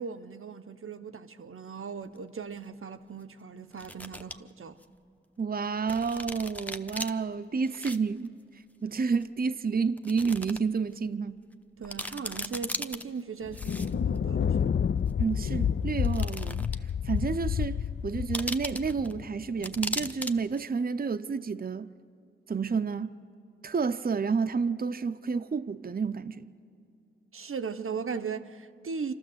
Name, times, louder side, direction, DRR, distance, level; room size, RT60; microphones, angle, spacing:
voice 1, 0.0-4.8 11.8-14.7 27.3-29.1, right 5 dB, 85° right, 0.7 m, -38 dB
sound 1, 2.2-2.3 3.7-4.3 4.8-4.9 5.9-7.1 7.6-8.0 8.2-8.3 9.2-9.3 10.0-10.6 11.0-11.1 11.5-11.6 11.8-13.0 13.5-14.2 15.1-15.2 16.0-16.9 17.2-17.3 18.3-19.1 19.6-20.3 20.6-20.7, left 1 dB, 5° left, 0.8 m, -37 dB
voice 2, 5.4-8.3 8.8-11.4 15.2-16.7 17.0-21.9 22.5-23.1 23.6-26.5, right 5 dB, 45° right, 0.5 m, -30 dB
Thunder, 13.5-20.1, left 7 dB, 60° left, 0.4 m, -30 dB
26.5 x 13.0 x 7.7 m
wide cardioid pair, 60°, 21 cm